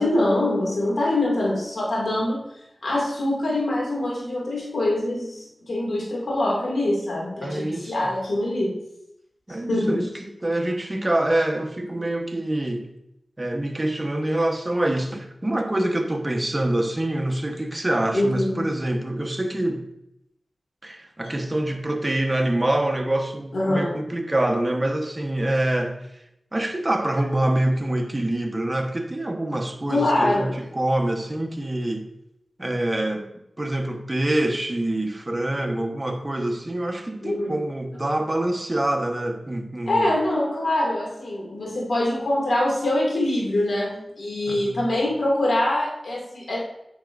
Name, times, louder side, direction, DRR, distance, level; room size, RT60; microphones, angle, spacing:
voice 1, 0.0-2.4 2.8-8.8 9.7-10.0 18.1-18.6 23.5-23.9 29.9-30.5 37.2-37.6 39.9-46.6, left 1 dB, 80° left, 2.3 m, -24 dB
voice 2, 7.4-8.0 9.5-10.1 10.4-12.9 13.4-19.9 20.8-26.0 26.5-32.1 32.6-33.3 33.6-40.1 44.5-44.9, right 1 dB, 30° right, 1.1 m, -25 dB
8.8 x 5.8 x 2.6 m
cardioid pair, 40°, 0 cm